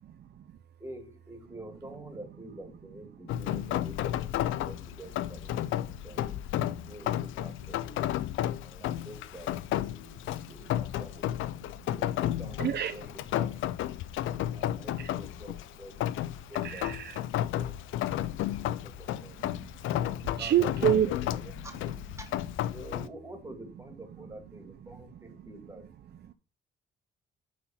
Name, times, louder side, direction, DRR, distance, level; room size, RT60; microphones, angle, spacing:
voice 1, 0.2-0.6 3.3-3.4 6.2-6.9 8.5-8.6 11.5-11.9 12.6-12.9 14.1-14.5 15.0-15.1 16.6-17.2 18.1-18.5 19.2-21.1 21.6-21.7 24.9-25.4 26.3-26.4, right 10 dB, 60° right, 0.7 m, -32 dB
voice 2, 0.8-6.3 6.7-8.0 8.6-11.4 11.9-13.1 13.3-13.7 14.5-16.0 16.5-16.9 17.4-17.7 18.4-19.4 20.0-21.8 22.2-22.3 22.7-25.9, right 1 dB, 15° right, 2.6 m, -47 dB
Rain, 3.3-23.1, left 13 dB, 85° left, 0.5 m, -32 dB
9.5 x 4.5 x 5.6 m
cardioid pair, 90°, 20 cm